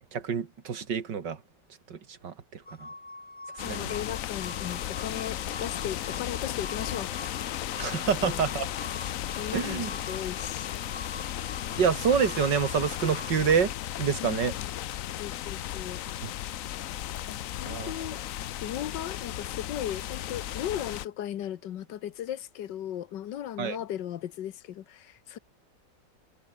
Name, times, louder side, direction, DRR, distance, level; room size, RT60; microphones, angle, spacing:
voice 1, 0.1-1.4 1.9-2.9 3.7-3.9 7.8-8.7 9.5-9.9 11.8-13.7 14.0-14.5 16.2-16.3 17.6-17.9 23.6-23.8, right 7 dB, 80° right, 2.6 m, -27 dB
sound 1, 2.7-13.4, left 2 dB, 15° left, 2.0 m, -45 dB
voice 2, 3.6-7.1 8.2-8.4 9.3-10.8 14.2-14.7 15.2-16.0 17.3-18.2 18.6-25.4, left 11 dB, 90° left, 1.6 m, -37 dB
sound 2, 3.6-21.1, left 12 dB, 65° left, 0.9 m, -35 dB
omnidirectional pair, 1.9 m